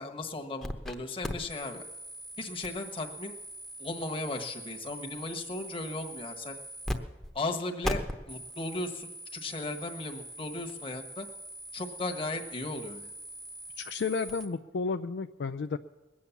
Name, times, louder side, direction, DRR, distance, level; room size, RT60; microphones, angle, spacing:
voice 1, 0.0-1.9 2.4-3.4 3.8-6.6 7.3-11.3 11.7-13.1, left 2 dB, 30° left, 3 dB, 1.3 m, -36 dB
sound 1, 0.6-0.9 1.2-7.0 7.2-7.3 7.8-14.5, equal, 5° left, 0.9 m, -40 dB
voice 2, 13.8-15.8, left 4 dB, 65° left, 8 dB, 0.4 m, -32 dB
21.0 x 8.6 x 7.1 m, 1.1 s
head